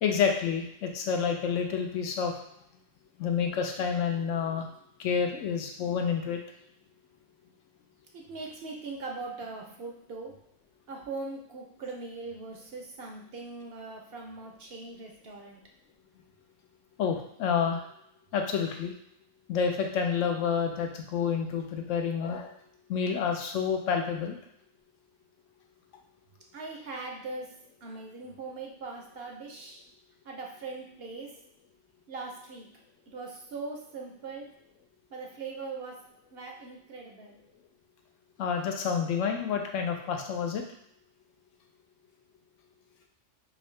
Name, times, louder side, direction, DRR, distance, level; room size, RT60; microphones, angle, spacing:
voice 1, 0.0-2.3 3.2-4.7 5.0-6.4 17.0-17.8 18.3-18.9 19.5-22.5 22.9-24.4 38.4-40.6, left 6 dB, 80° left, 3 dB, 1.0 m, -29 dB
voice 2, 8.1-10.3 10.9-15.6 26.5-27.5 27.8-29.8 30.3-31.3 32.1-32.7 33.1-34.5 35.1-36.0 36.3-37.4, right 3 dB, 60° right, 1 dB, 0.7 m, -40 dB
3.7 x 2.6 x 3.2 m, 0.74 s
omnidirectional pair, 1.3 m